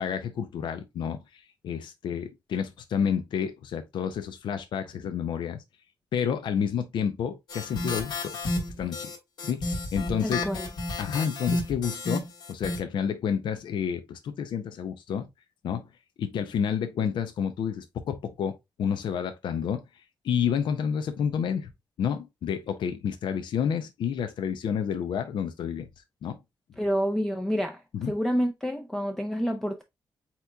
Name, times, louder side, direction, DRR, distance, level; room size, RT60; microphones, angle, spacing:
voice 1, 0.0-5.6 6.1-8.4 8.8-9.1 9.4-10.4 11.0-15.3 15.6-15.8 16.2-19.8 20.2-21.7 22.0-25.9 26.2-26.4 27.9-28.1, left 7 dB, 80° left, 0.5 m, -30 dB
sound 1, 7.5-12.8, left 2 dB, 65° left, 1.5 m, -32 dB
voice 2, 10.2-10.7 26.8-29.8, equal, 5° left, 0.4 m, -28 dB
7.9 x 2.9 x 2.2 m
wide cardioid pair, 170°, 8 cm